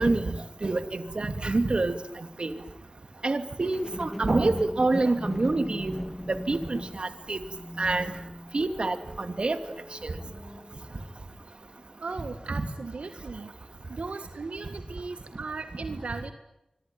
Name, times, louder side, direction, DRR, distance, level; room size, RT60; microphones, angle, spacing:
voice 1, 0.0-2.0 2.4-2.6 3.2-5.9 6.3-7.4 7.8-8.1 8.5-9.6, right 2 dB, 55° right, 8 dB, 2.6 m, -27 dB
sound 1, 3.6-11.0 11.6-11.7, equal, ahead, 2.7 m, -39 dB
voice 2, 12.0-13.5 13.9-16.3, right 4 dB, 90° right, 7 dB, 1.8 m, -37 dB
25.5 x 23.5 x 9.3 m, 0.85 s
wide cardioid pair, 55°, 2 cm